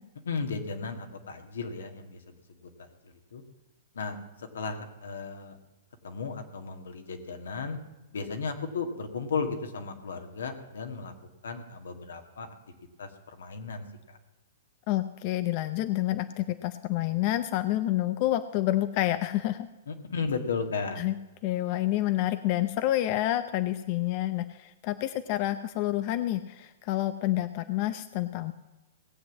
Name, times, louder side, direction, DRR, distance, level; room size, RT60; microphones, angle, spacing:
voice 1, 0.3-3.4 3.9-5.6 6.0-7.8 8.1-11.1 11.4-12.5 13.0-14.2 19.9-21.0, left 5 dB, 85° left, 5 dB, 2.0 m, -35 dB
voice 2, 14.9-19.7 21.0-21.1 21.4-28.5, left 14 dB, 45° left, 11 dB, 0.6 m, -28 dB
17.5 x 7.8 x 7.4 m, 1.1 s
hypercardioid pair, 135°, 0 cm